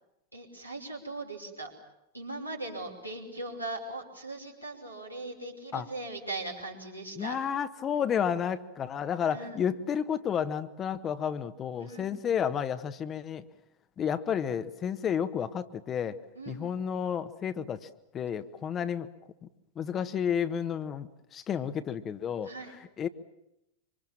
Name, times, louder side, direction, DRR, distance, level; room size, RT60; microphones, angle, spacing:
voice 1, 0.3-1.7 2.1-7.4 9.3-9.6 11.8-12.2 16.4-16.6 22.4-22.8, right 2 dB, 90° right, -1 dB, 5.5 m, -39 dB
voice 2, 7.2-13.4 14.0-16.2 16.5-17.9 18.1-19.1 19.7-23.1, left 8 dB, 25° left, 11 dB, 1.4 m, -31 dB
26.0 x 25.5 x 7.5 m, 0.85 s
figure-of-eight pair, 90°, 0 cm